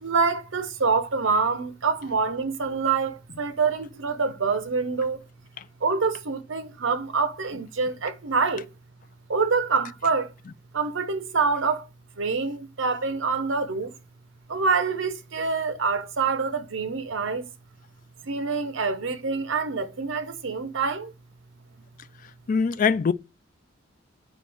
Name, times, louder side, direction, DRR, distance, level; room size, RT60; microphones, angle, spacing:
voice 1, 0.0-5.2 5.8-8.7 9.3-10.3 10.7-11.9 12.2-13.9 14.5-17.5 18.2-21.1, right 4 dB, 70° right, 0.8 m, -26 dB
voice 2, 22.2-23.1, left 5 dB, 40° left, 0.3 m, -23 dB
8.8 x 5.2 x 3.5 m
head